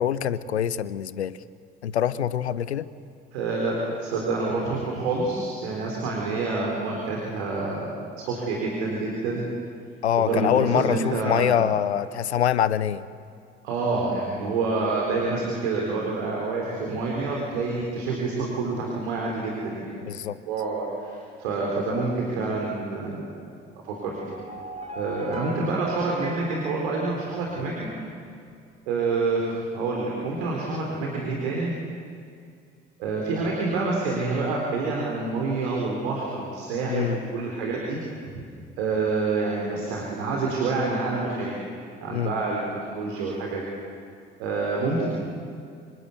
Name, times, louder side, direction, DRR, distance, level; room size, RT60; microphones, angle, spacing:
voice 1, 0.0-1.4 1.8-2.9 10.0-13.0 20.0-20.4 36.9-37.2 42.1-42.3, left 10 dB, 80° left, 18 dB, 0.7 m, -24 dB
voice 2, 3.3-9.4 10.1-11.6 13.6-19.9 20.5-23.2 23.7-24.3 25.0-27.9 28.9-31.7 33.0-38.0 38.3-38.4 38.8-41.5 42.0-43.6 44.4-45.1, right 3 dB, 70° right, -2 dB, 3.9 m, -27 dB
sound 1, 23.9-27.9, right 2 dB, 20° right, 3.3 m, -40 dB
26.0 x 25.5 x 8.2 m, 2.3 s
figure-of-eight pair, 50°, 33 cm